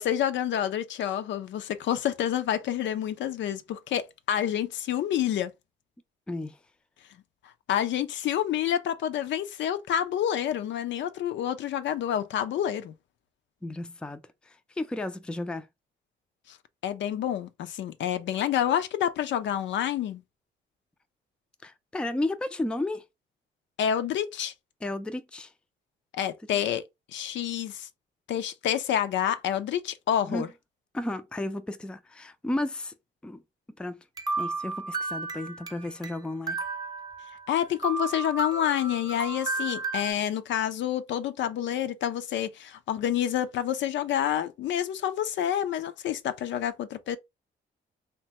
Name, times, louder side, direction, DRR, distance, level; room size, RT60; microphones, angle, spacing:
voice 1, 0.0-5.5 7.7-12.9 16.5-16.6 16.8-20.2 23.8-24.5 26.1-26.8 27.1-27.9 28.3-30.5 37.5-47.2, left 10 dB, 70° left, 0.5 m, -28 dB
voice 2, 13.6-14.2 14.5-15.7 21.6-23.0 24.8-25.5 30.3-30.4 30.9-32.9 33.2-33.4 33.8-34.0 34.4-36.6, left 1 dB, 5° left, 0.3 m, -33 dB
sound 1, 34.2-36.1 36.5-37.5 37.8-40.1, right 3 dB, 20° right, 0.8 m, -33 dB
3.2 x 2.2 x 2.9 m
cardioid pair, 90°, 20 cm